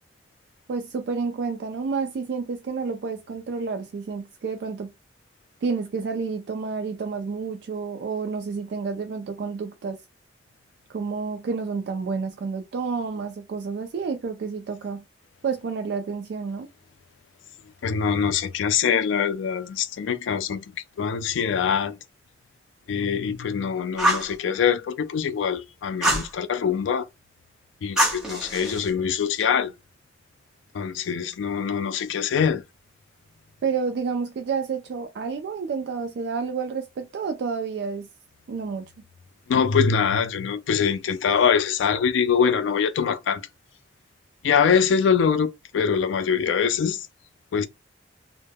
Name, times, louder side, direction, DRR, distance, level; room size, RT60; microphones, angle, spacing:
voice 1, 0.7-4.9 5.6-10.0 10.9-15.0 15.4-16.7 33.6-38.1 38.5-38.8, right 5 dB, 65° right, 0.3 m, -29 dB
voice 2, 17.8-20.7 21.0-22.0 22.9-27.1 27.8-29.7 30.7-32.6 39.5-43.4 44.4-47.1 47.5-47.7, left 7 dB, 85° left, 0.3 m, -23 dB
Fire, 24.0-24.3 26.0-26.3 28.0-28.9, right 1 dB, 5° right, 0.8 m, -24 dB
2.1 x 2.0 x 3.2 m
head